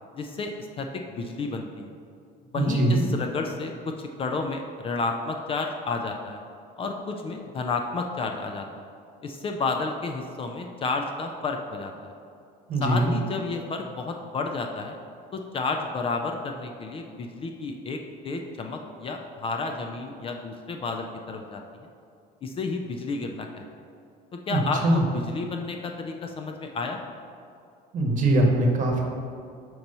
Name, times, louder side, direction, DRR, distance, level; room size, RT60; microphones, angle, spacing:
voice 1, 0.1-1.9 2.5-6.4 6.8-8.9 9.2-12.1 12.8-15.0 15.3-21.6 22.4-23.6 24.5-27.0, left 3 dB, 30° left, 3 dB, 0.4 m, -31 dB
voice 2, 2.6-3.0 12.7-13.1 24.5-25.0 27.9-29.0, right 1 dB, 45° right, 1 dB, 1.1 m, -22 dB
6.4 x 3.0 x 5.4 m, 2.4 s
cardioid pair, 125°, 19 cm